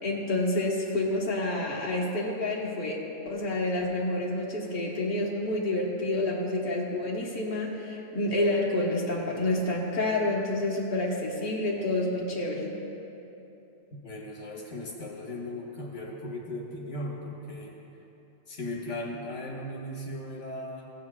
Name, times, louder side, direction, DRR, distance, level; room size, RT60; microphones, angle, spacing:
voice 1, 0.0-3.0 3.2-12.7, left 2 dB, 45° left, -4 dB, 1.5 m, -28 dB
voice 2, 14.0-17.8 18.5-20.9, left 1 dB, 75° left, -3 dB, 1.6 m, -37 dB
16.0 x 9.2 x 2.4 m, 3.0 s
omnidirectional pair, 1.2 m